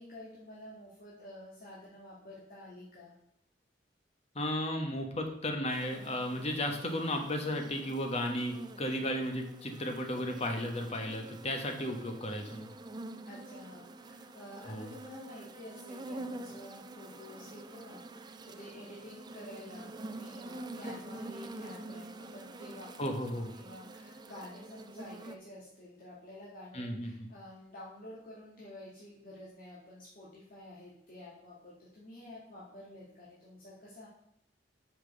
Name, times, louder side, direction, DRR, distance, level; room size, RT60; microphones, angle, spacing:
voice 1, 0.0-3.1 13.3-34.1, left 1 dB, 55° left, -7 dB, 2.1 m, -50 dB
voice 2, 4.3-12.7 14.6-14.9 23.0-23.5 26.7-27.3, left 1 dB, 35° left, 4 dB, 1.2 m, -34 dB
sound 1, 5.7-25.4, right 2 dB, 25° right, 0.4 m, -47 dB
5.9 x 5.2 x 6.7 m, 0.75 s
head